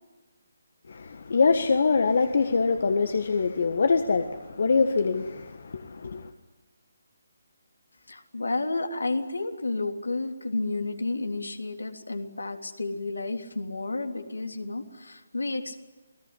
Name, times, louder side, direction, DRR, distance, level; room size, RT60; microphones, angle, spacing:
voice 1, 0.9-6.2, left 4 dB, 55° left, 8 dB, 1.7 m, -24 dB
voice 2, 8.1-15.8, left 2 dB, 75° left, 5 dB, 3.4 m, -31 dB
28.5 x 20.0 x 10.0 m, 1.2 s
figure-of-eight pair, 145°, 0 cm